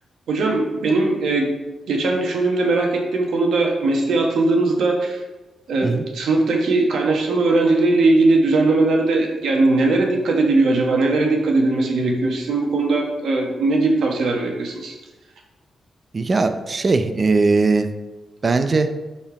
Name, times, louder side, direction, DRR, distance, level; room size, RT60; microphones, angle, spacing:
voice 1, 0.3-1.6 1.9-5.2 5.7-14.9, right 2 dB, 80° right, 0 dB, 1.5 m, -19 dB
voice 2, 16.1-17.9 18.4-18.9, right 3 dB, 35° right, 9 dB, 0.6 m, -19 dB
5.5 x 4.5 x 5.9 m, 1.2 s
cardioid pair, 105°, 0 cm